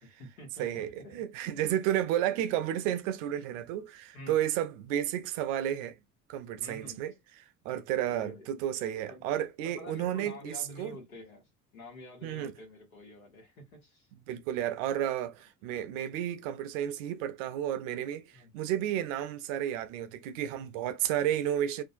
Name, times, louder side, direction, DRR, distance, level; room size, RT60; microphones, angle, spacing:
voice 1, 0.0-1.2 4.1-4.4 6.6-7.0 8.0-8.5 9.1-9.2 9.6-14.1 18.3-18.5, left 1 dB, 80° left, 1.1 m, -48 dB
voice 2, 0.6-6.0 6.3-7.1 7.6-11.0 12.2-12.5 14.3-21.8, right 11 dB, 65° right, 0.5 m, -32 dB
2.5 x 2.1 x 2.5 m
figure-of-eight pair, 55°, 41 cm